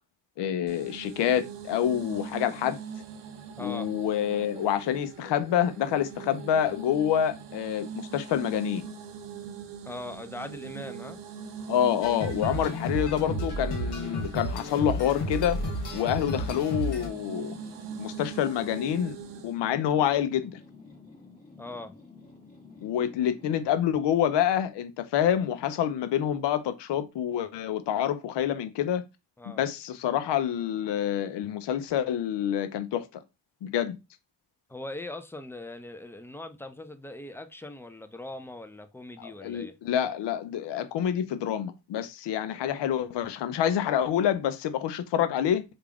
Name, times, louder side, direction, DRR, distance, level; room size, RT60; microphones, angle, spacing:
voice 1, 0.4-2.8 3.6-8.8 11.7-15.6 15.9-17.6 18.0-19.2 19.4-20.6 22.8-29.0 29.4-33.2 33.6-34.0 39.2-45.6, left 10 dB, 90° left, 0.6 m, -27 dB
sound 1, 0.7-19.6, right 7 dB, 85° right, 0.6 m, -42 dB
voice 2, 3.6-3.9 9.8-11.2 21.6-21.9 29.4-29.6 34.7-39.7, left 2 dB, 5° left, 0.4 m, -40 dB
sound 2, 12.0-17.1, equal, 65° left, 1.3 m, -32 dB
sound 3, 16.8-23.8, left 3 dB, 20° left, 1.5 m, -51 dB
3.3 x 2.5 x 3.4 m
cardioid pair, 60°, 41 cm